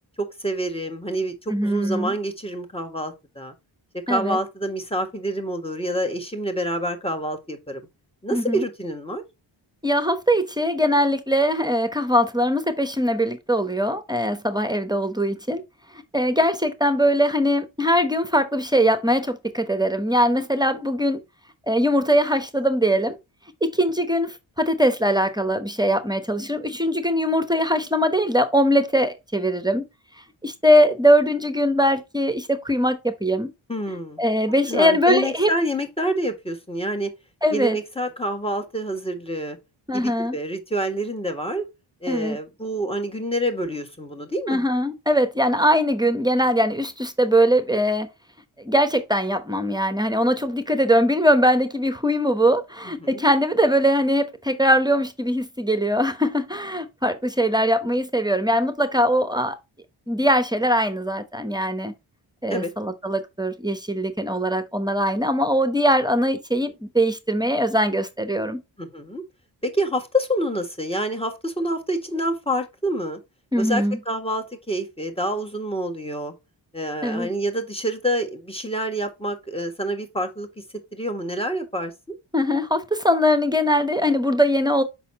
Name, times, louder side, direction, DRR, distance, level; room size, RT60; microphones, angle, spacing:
voice 1, 0.2-3.5 4.1-7.8 8.2-9.2 33.7-34.2 34.6-37.1 37.5-39.6 39.9-41.7 42.0-44.6 53.0-53.2 62.5-62.7 68.8-69.2 69.6-73.2 73.6-76.3 76.7-80.6 80.9-82.1, equal, 10° left, 1.6 m, -27 dB
voice 2, 1.5-2.1 4.1-4.4 8.3-8.6 9.8-15.6 16.1-21.2 21.7-23.2 23.6-29.8 30.4-33.5 34.2-35.5 37.4-37.8 39.9-40.4 42.1-42.4 44.5-48.1 48.6-59.6 60.1-61.9 62.4-68.6 73.5-74.0 77.0-77.3 82.3-84.8, equal, 10° right, 1.0 m, -21 dB
5.8 x 4.1 x 4.1 m
cardioid pair, 55°, 47 cm